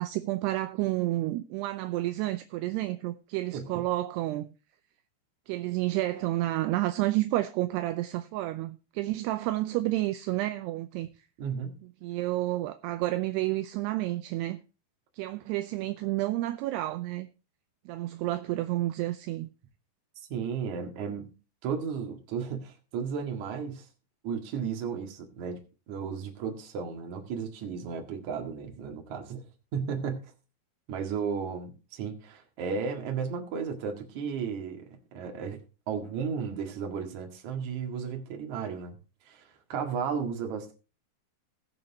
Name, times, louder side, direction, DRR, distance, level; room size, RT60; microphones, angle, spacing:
voice 1, 0.0-4.5 5.5-11.3 11.8-14.6 15.1-17.3 17.9-19.5, right 17 dB, 80° right, 2.5 m, -30 dB
voice 2, 11.4-11.8 20.3-21.3 21.6-23.9 24.2-25.6 25.9-29.4 29.7-30.3 30.9-34.9 35.1-35.6 35.9-39.0 39.3-40.7, right 6 dB, 50° right, 2.6 m, -34 dB
20.5 x 6.8 x 2.9 m
omnidirectional pair, 5.2 m